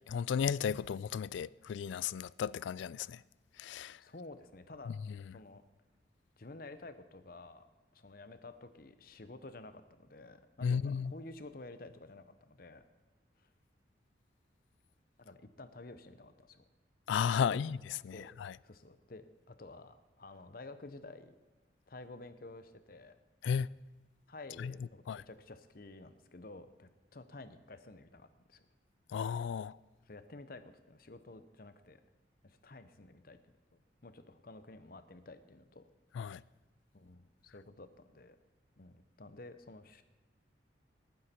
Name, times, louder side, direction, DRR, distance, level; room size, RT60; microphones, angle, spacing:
voice 1, 0.1-3.2 3.6-4.0 4.9-5.0 10.6-11.1 17.1-17.8 18.0-18.5 23.4-23.7 24.6-24.7 25.1-25.2 29.1-29.8 36.1-36.4, left 7 dB, 80° left, 0.3 m, -34 dB
voice 2, 4.0-5.0 5.3-5.6 6.4-7.7 7.9-12.8 13.4-13.5 15.2-16.6 17.4-17.6 18.1-21.3 21.9-23.1 24.3-28.7 30.0-32.0 32.4-35.8 36.9-38.4 38.8-40.0, left 2 dB, 50° left, 0.8 m, -51 dB
19.0 x 9.5 x 4.4 m
head